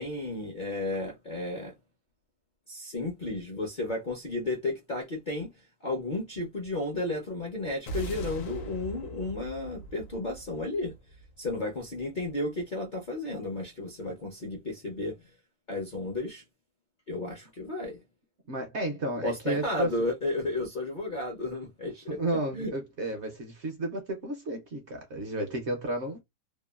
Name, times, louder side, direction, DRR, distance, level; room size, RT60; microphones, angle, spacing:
voice 1, 0.0-1.7 2.7-5.5 5.8-10.9 11.4-15.1 15.7-16.4 17.1-18.0 19.2-22.1 22.5-22.7, left 2 dB, 50° left, 0.6 m, -33 dB
sound 1, 7.9-12.3, right 1 dB, 65° left, 1.0 m, -41 dB
voice 2, 18.5-19.9 22.1-26.2, right 1 dB, 60° right, 0.8 m, -32 dB
2.9 x 2.2 x 2.3 m
omnidirectional pair, 1.7 m